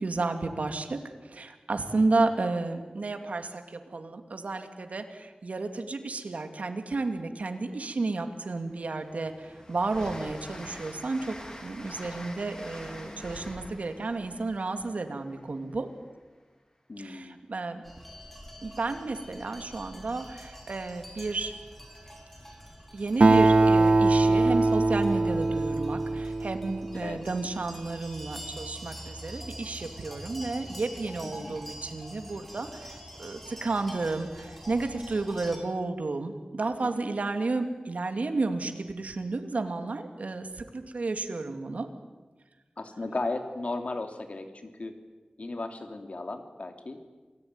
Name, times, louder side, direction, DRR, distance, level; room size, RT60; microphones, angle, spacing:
voice 1, 0.0-11.4 11.6-15.9 17.0-17.8 18.6-21.5 22.9-41.9, right 3 dB, 80° right, 6 dB, 2.7 m, -32 dB
Train, 7.8-7.9 8.3-16.0, left 1 dB, 30° left, 4.5 m, -45 dB
voice 2, 16.9-17.4 27.0-27.2 31.2-31.5 36.8-37.1 42.8-44.9 45.4-47.0, left 2 dB, 65° left, 6 dB, 3.0 m, -35 dB
sound 1, 17.8-35.6, equal, 5° left, 6.5 m, -46 dB
Acoustic guitar, 23.2-27.0, right 2 dB, 60° right, 1.4 m, -22 dB
28.0 x 19.0 x 9.8 m, 1.3 s
wide cardioid pair, 70°, 2 cm